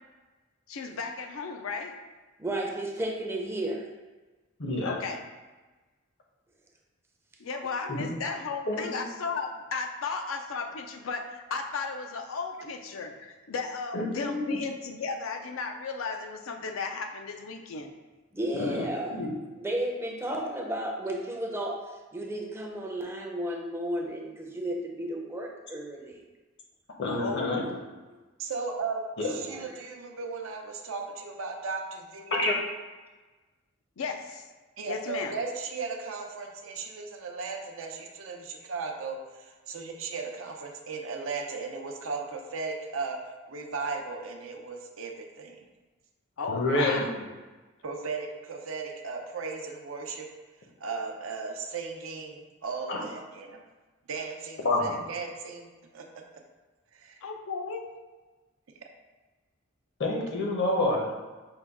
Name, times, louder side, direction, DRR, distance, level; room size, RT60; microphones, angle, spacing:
voice 1, 0.7-2.0 4.8-5.2 7.4-17.9 19.0-19.1 27.1-28.0 34.0-34.4 34.9-35.4 46.4-47.1 57.2-57.9 60.7-61.0, left 4 dB, 85° left, 4 dB, 0.5 m, -35 dB
voice 2, 2.4-3.9 18.3-19.2 19.6-21.8 22.1-26.2 29.3-29.7, right 1 dB, 10° right, 0 dB, 0.5 m, -33 dB
voice 3, 4.6-4.9 8.0-8.1 8.7-8.8 13.9-14.6 18.6-18.8 19.1-19.3 27.0-27.6 29.2-29.3 32.3-32.5 46.5-47.0 52.9-53.0 54.6-55.0 60.0-61.1, left 2 dB, 60° left, 0 dB, 0.8 m, -27 dB
voice 4, 28.4-32.4 34.8-45.7 47.8-50.3 50.8-53.6 54.1-56.4 56.9-57.2, right 4 dB, 80° right, 2 dB, 0.6 m, -36 dB
5.5 x 2.3 x 3.5 m, 1.2 s
head